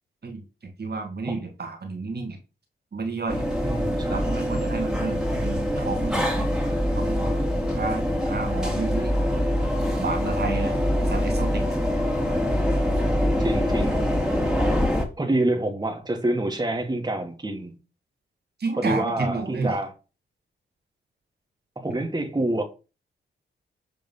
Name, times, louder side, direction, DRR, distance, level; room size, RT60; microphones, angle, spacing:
voice 1, 0.2-2.4 2.9-3.5 4.1-6.3 6.9-7.3 7.7-9.1 10.0-10.8 11.0-11.7 18.6-19.8, right 4 dB, 55° right, 2.2 m, -31 dB
sound 1, 3.3-15.0, equal, 5° right, 2.7 m, -24 dB
voice 2, 3.6-4.3 13.4-14.0 15.2-17.7 18.8-19.9 21.7-22.6, right 1 dB, 20° right, 1.8 m, -27 dB
6.8 x 3.8 x 5.5 m
supercardioid pair, 50°, 20 cm